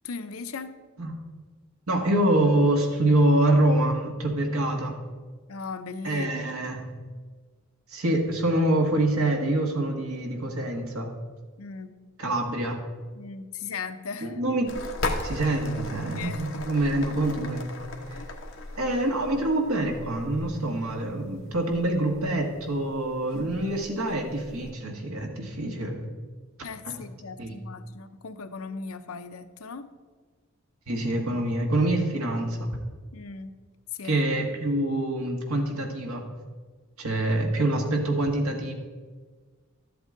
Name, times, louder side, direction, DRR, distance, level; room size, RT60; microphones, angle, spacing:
voice 1, 0.0-0.7 5.5-6.3 11.6-11.9 13.1-14.4 16.2-16.6 18.1-18.3 26.6-29.9 33.1-33.5 33.9-34.2, left 5 dB, 80° left, 10 dB, 0.7 m, -38 dB
voice 2, 1.9-5.0 6.0-6.8 7.9-11.1 12.2-12.8 14.2-14.7 15.2-17.7 18.1-18.2 18.8-26.0 26.8-27.0 27.4-27.5 30.9-32.7 34.0-36.2 37.0-38.7, right 1 dB, 85° right, 2 dB, 1.7 m, -25 dB
sound 1, 14.7-24.7, left 2 dB, 65° left, 1.1 m, -38 dB
12.5 x 7.8 x 3.8 m, 1.5 s
head